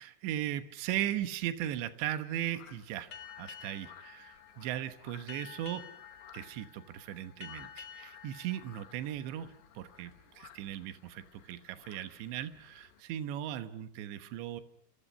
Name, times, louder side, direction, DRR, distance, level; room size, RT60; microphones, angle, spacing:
voice 1, 0.0-3.1 3.4-5.9 6.3-14.6, right 12 dB, 80° right, 10 dB, 3.5 m, -38 dB
sound 1, 2.4-13.0, left 8 dB, 80° left, 4.5 m, -58 dB
Boat Water vehicle, 3.1-10.2, left 8 dB, 45° left, 2.4 m, -51 dB
27.5 x 27.0 x 5.6 m, 0.63 s
omnidirectional pair, 5.2 m